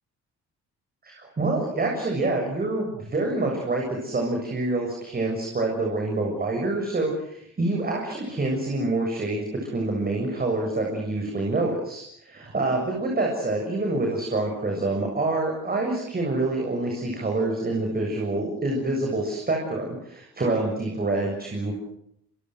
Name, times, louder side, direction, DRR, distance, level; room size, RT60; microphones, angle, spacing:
voice 1, 1.0-21.7, right 2 dB, 30° right, 1 dB, 7.3 m, -26 dB
28.5 x 23.5 x 7.9 m, 0.74 s
cardioid pair, 90°, 30 cm